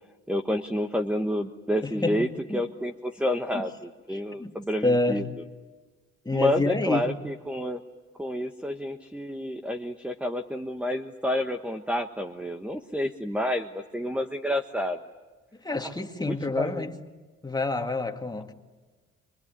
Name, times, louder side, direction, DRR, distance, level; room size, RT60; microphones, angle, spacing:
voice 1, 0.3-5.2 6.3-7.8 8.2-15.0 15.8-15.9 16.3-16.9, left 1 dB, 5° right, 1.2 m, -29 dB
voice 2, 1.8-2.6 3.5-3.7 4.1-5.3 6.2-7.1 15.6-17.0 17.4-18.5, left 2 dB, 15° left, 2.2 m, -28 dB
25.0 x 23.5 x 9.8 m
cardioid pair, 90°, 30 cm